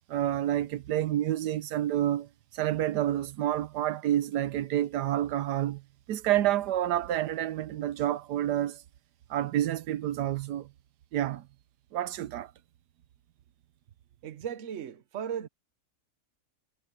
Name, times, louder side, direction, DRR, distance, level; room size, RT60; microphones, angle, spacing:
voice 1, 0.1-5.8 6.1-8.8 9.3-10.7 11.1-11.5 11.9-12.5, right 12 dB, 85° right, 1.3 m, -29 dB
voice 2, 14.2-15.5, right 8 dB, 55° right, 1.2 m, -36 dB
omnidirectional pair, 1.7 m